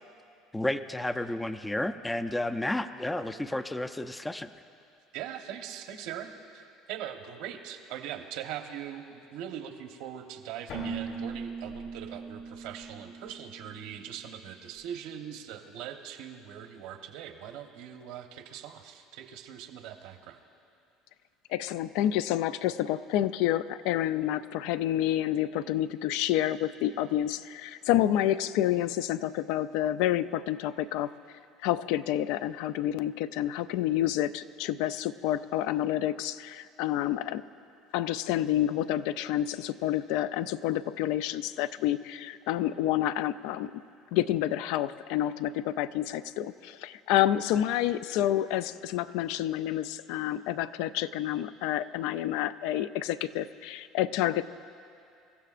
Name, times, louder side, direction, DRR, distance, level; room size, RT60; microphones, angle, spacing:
voice 1, 0.5-4.5, left 1 dB, 10° left, 10 dB, 0.4 m, -31 dB
voice 2, 5.1-20.4, right 9 dB, 75° right, 5 dB, 1.1 m, -41 dB
Keyboard (musical), 10.7-14.3, right 4 dB, 55° left, 3.5 m, -39 dB
voice 3, 21.5-31.1 31.6-37.4 37.9-43.7 44.1-54.5, left 12 dB, 75° left, 14 dB, 0.4 m, -29 dB
26.5 x 15.0 x 2.5 m, 2.6 s
cardioid pair, 130°, 0 cm